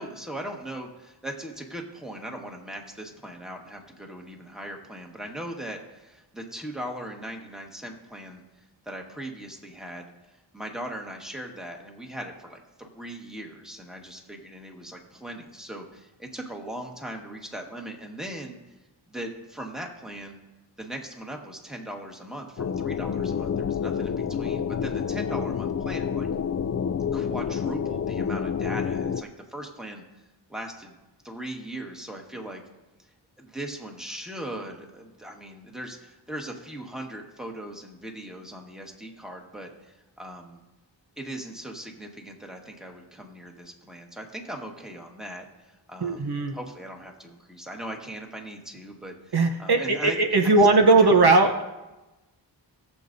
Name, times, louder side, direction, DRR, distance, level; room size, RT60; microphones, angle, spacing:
voice 1, 0.0-8.4 8.8-10.1 10.5-18.6 19.1-20.4 20.8-26.3 27.1-30.0 30.5-31.0 31.2-32.6 33.4-40.6 41.2-50.2 50.4-50.7 51.0-51.2, right 1 dB, ahead, 1 dB, 1.5 m, -39 dB
sound 1, 22.6-29.2, left 7 dB, 40° left, 0.4 m, -28 dB
voice 2, 46.0-46.5 49.3-51.6, right 3 dB, 60° right, 4 dB, 0.9 m, -19 dB
18.0 x 7.0 x 2.6 m, 1.1 s
wide cardioid pair, 70°, 45 cm